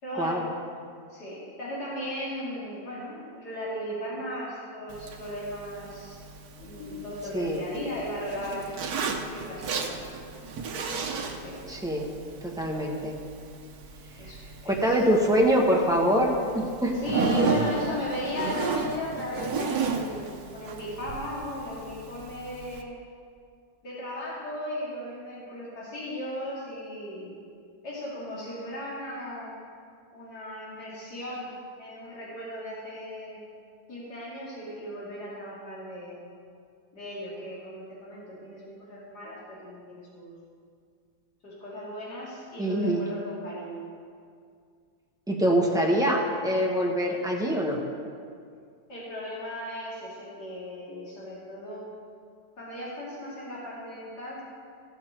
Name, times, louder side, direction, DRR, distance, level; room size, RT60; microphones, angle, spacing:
voice 1, 0.0-0.5 1.1-6.2 6.5-8.7 9.3-10.1 11.4-11.6 14.1-15.0 17.0-23.0 23.8-27.3 27.8-29.5 30.1-31.5 31.8-33.4 33.9-36.2 36.9-40.3 41.4-43.8 48.9-51.8 52.6-54.4, left 1 dB, 85° left, -7 dB, 3.0 m, -36 dB
Zipper (clothing), 4.9-22.8, right 4 dB, 70° right, 1.3 m, -34 dB
voice 2, 11.7-12.1 12.4-13.1 14.8-17.0 42.6-43.0 45.3-47.8, equal, 5° right, -2 dB, 1.1 m, -24 dB
15.5 x 6.7 x 4.5 m, 2.2 s
omnidirectional pair, 1.7 m